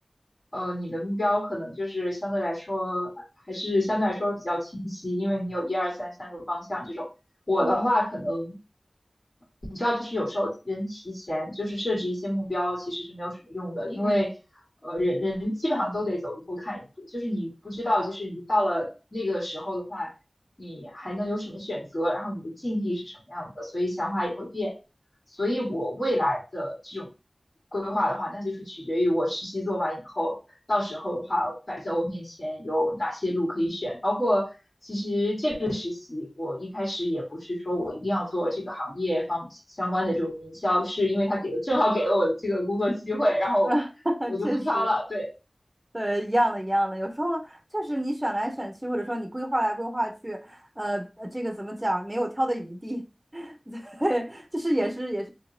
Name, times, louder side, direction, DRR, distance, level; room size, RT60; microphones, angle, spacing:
voice 1, 0.5-7.1 7.5-8.6 9.7-14.3 14.8-20.1 20.6-24.7 25.4-27.1 27.7-30.4 30.7-34.5 34.8-43.7 44.3-45.3, left 1 dB, 45° left, 2.0 m, -28 dB
voice 2, 43.7-44.9 45.9-53.1 53.3-55.3, right 1 dB, 20° right, 0.8 m, -28 dB
3.7 x 2.8 x 2.7 m
wide cardioid pair, 55°, 0 cm